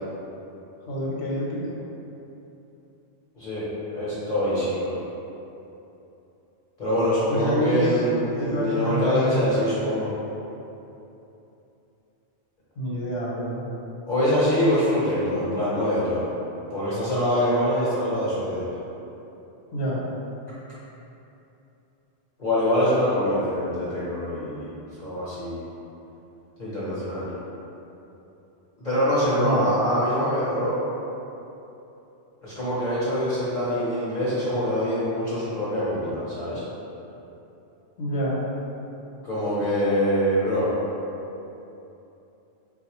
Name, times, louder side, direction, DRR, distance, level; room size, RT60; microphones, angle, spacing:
voice 1, 0.9-1.8 7.3-8.0 8.4-9.4 12.8-13.6 19.7-20.0 29.3-29.6 38.0-38.4, equal, 70° left, -6 dB, 1.0 m, -27 dB
voice 2, 3.9-4.9 6.8-10.1 14.0-16.2 16.7-18.6 22.4-24.7 25.0-25.6 26.6-27.4 28.8-30.8 32.4-36.6 39.2-40.7, equal, 45° left, -11 dB, 0.9 m, -24 dB
4.0 x 2.3 x 2.9 m, 2.9 s
omnidirectional pair, 1.2 m